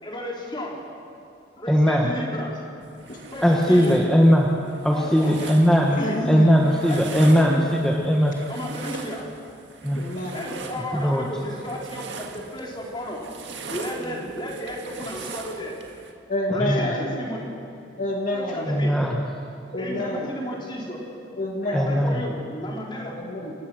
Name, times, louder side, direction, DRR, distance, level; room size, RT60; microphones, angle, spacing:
voice 1, 0.0-0.8 1.6-2.6 3.3-4.0 4.9-5.3 6.0-6.2 6.9-7.7 8.5-9.3 10.3-13.2 13.7-15.7 16.5-17.5 18.3-19.0 19.8-21.0 21.6-23.2, equal, 25° left, -3 dB, 4.0 m, -33 dB
voice 2, 1.7-2.1 3.4-4.5 4.8-6.0 6.2-8.3 9.8-10.0 10.8-11.2 16.6-16.9 18.7-19.2 21.7-22.2, equal, 5° left, -1 dB, 1.4 m, -19 dB
sound 1, 2.8-16.1, right 4 dB, 70° right, 1.9 m, -41 dB
voice 3, 6.0-6.5 9.9-10.5 14.0-14.3 16.3-17.1 18.0-18.7 19.7-20.3 21.3-22.0 23.2-23.5, left 1 dB, 45° left, 0 dB, 2.3 m, -28 dB
28.5 x 15.5 x 6.5 m, 2.6 s
head